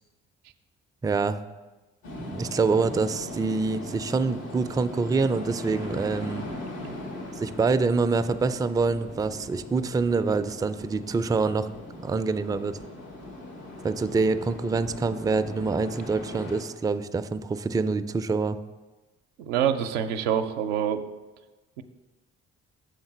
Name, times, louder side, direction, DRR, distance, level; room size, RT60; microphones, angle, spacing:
voice 1, 1.0-1.4 2.2-6.5 7.4-11.7 12.0-12.8 13.8-18.6, right 4 dB, 10° right, 10 dB, 0.3 m, -26 dB
sound 1, 2.0-16.6, left 1 dB, 85° left, 1.7 m, -40 dB
voice 2, 19.4-21.0 21.8-21.9, right 9 dB, 90° right, 6 dB, 0.5 m, -26 dB
6.6 x 3.8 x 6.0 m, 1.2 s
hypercardioid pair, 50°, 33 cm